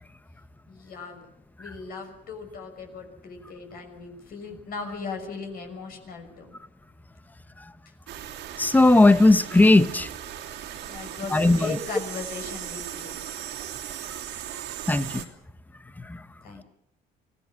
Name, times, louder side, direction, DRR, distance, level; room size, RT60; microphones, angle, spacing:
voice 1, 0.7-1.3 1.6-6.6 10.8-13.4 14.5-14.6 16.4-16.6, left 4 dB, 60° left, 4 dB, 6.2 m, -38 dB
sound 1, 8.1-15.3, right 11 dB, 90° right, 2.9 m, -37 dB
voice 2, 8.6-10.1 11.3-11.8 14.9-15.3 16.0-16.2, left 2 dB, 10° left, 14 dB, 1.0 m, -18 dB
25.0 x 17.0 x 7.7 m, 0.79 s
cardioid pair, 110°, 17 cm